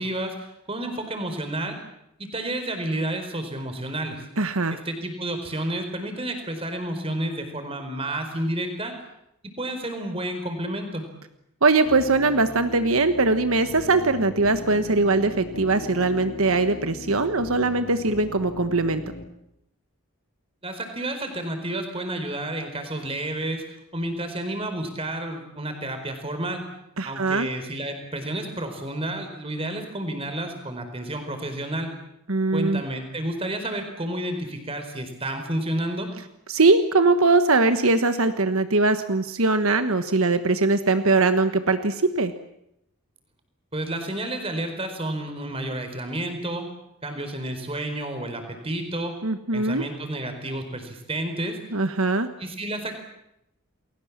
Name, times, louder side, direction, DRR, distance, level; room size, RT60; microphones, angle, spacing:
voice 1, 0.0-1.8 2.2-4.3 4.7-9.0 9.6-11.0 20.6-23.6 23.9-26.6 27.0-31.9 32.5-36.1 43.7-46.6 47.0-49.1 49.5-51.6 52.4-53.0, right 1 dB, 25° right, 7 dB, 4.5 m, -30 dB
voice 2, 4.4-4.8 11.6-19.0 27.0-27.5 32.3-32.8 36.5-42.3 49.2-49.8 51.7-52.3, right 3 dB, 70° right, 9 dB, 1.4 m, -21 dB
sound 1, 11.9-19.2, left 2 dB, 60° left, 2.7 m, -38 dB
29.5 x 21.5 x 7.5 m, 0.81 s
head